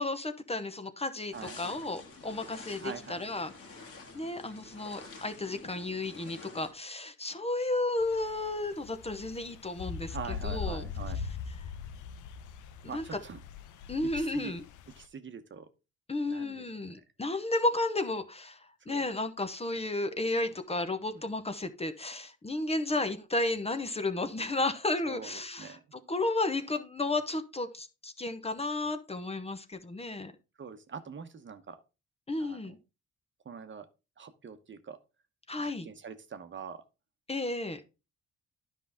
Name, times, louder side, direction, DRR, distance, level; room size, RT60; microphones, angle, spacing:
voice 1, 0.0-10.2 10.4-10.8 12.9-13.0 13.9-14.6 16.1-25.8 26.1-30.3 32.3-32.8 35.5-35.9 37.3-37.8, left 2 dB, 20° left, 9 dB, 0.9 m, -33 dB
sound 1, 1.3-6.7, left 3 dB, 50° left, 2.3 m, -49 dB
voice 2, 1.3-1.8 2.8-3.2 10.1-11.2 12.9-13.4 14.1-14.6 15.0-15.7 16.3-16.7 18.9-19.0 25.0-25.8 30.6-31.8 32.4-32.7 33.4-33.9 34.2-35.0 35.6-36.8, right 6 dB, 40° right, 9 dB, 1.0 m, -44 dB
sound 2, 8.0-15.0, left 6 dB, 80° left, 0.8 m, -41 dB
10.0 x 5.5 x 3.5 m, 0.29 s
cardioid pair, 90°, 30 cm